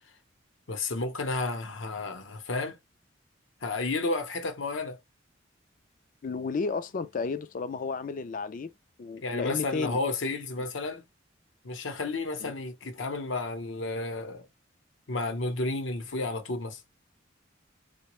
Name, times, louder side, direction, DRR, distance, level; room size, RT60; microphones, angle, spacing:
voice 1, 0.7-2.8 3.6-5.0 9.2-11.0 11.6-14.5 15.1-16.8, left 3 dB, 75° left, 0.8 m, -32 dB
voice 2, 6.2-8.7 9.0-10.0 12.4-12.5, left 4 dB, 45° left, 0.4 m, -32 dB
3.9 x 2.1 x 3.0 m
head